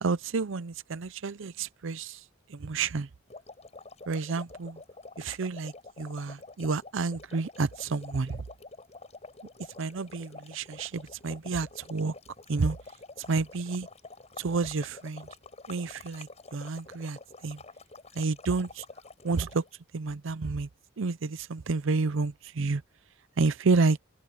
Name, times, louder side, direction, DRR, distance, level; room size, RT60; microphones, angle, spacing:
voice 1, 0.0-2.2 2.5-3.1 4.1-4.8 5.2-8.4 9.8-12.1 12.5-12.8 13.3-13.9 14.4-15.3 15.7-17.2 17.4-17.6 18.1-18.8 19.2-19.6 19.9-20.7 21.0-22.8 23.4-24.0, right 4 dB, 65° right, 0.6 m, -30 dB
sound 1, 3.3-19.7, left 3 dB, 35° left, 7.7 m, -48 dB
head